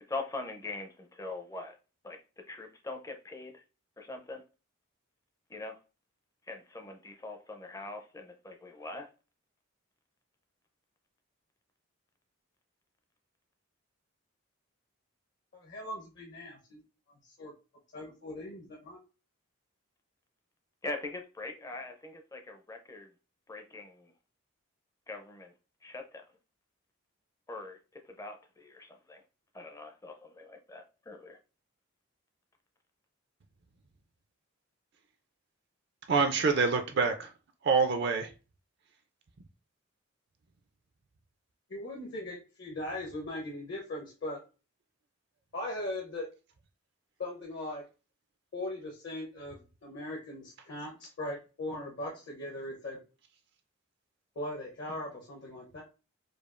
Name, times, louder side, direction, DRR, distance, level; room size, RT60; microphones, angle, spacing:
voice 1, 0.1-1.8 2.0-2.2 2.5-3.6 4.0-4.4 5.5-5.8 6.5-9.1 20.8-23.1 23.5-24.1 25.1-25.5 25.8-26.2 27.5-27.8 28.0-29.2 29.5-31.4, left 2 dB, 15° left, 0.4 m, -42 dB
voice 2, 15.5-16.8 17.2-17.5 17.9-19.0 37.0-37.1 41.7-44.4 45.5-46.3 47.2-47.8 48.5-53.0 54.4-55.8, left 1 dB, 55° left, 0.8 m, -39 dB
voice 3, 36.1-37.3 37.6-38.3, right 4 dB, 50° right, 0.4 m, -26 dB
4.9 x 2.3 x 2.4 m
head